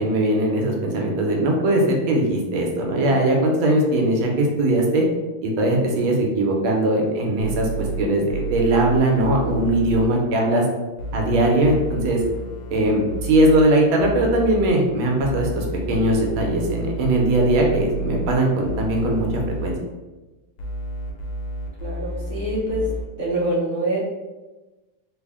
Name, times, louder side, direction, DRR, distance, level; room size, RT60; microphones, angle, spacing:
voice 1, 0.0-5.0 5.4-10.6 11.1-12.2 12.7-19.8, right 1 dB, 80° right, 0 dB, 1.5 m, -20 dB
sound 1, 7.4-10.1 11.0-13.6 14.0-14.7 15.2-18.4 18.6-19.7 20.6-23.0, right 1 dB, 80° left, 1.5 m, -30 dB
voice 2, 21.8-22.9 23.2-24.0, right 1 dB, 40° right, -7 dB, 0.9 m, -25 dB
3.6 x 2.1 x 3.4 m, 1.1 s
omnidirectional pair, 2.3 m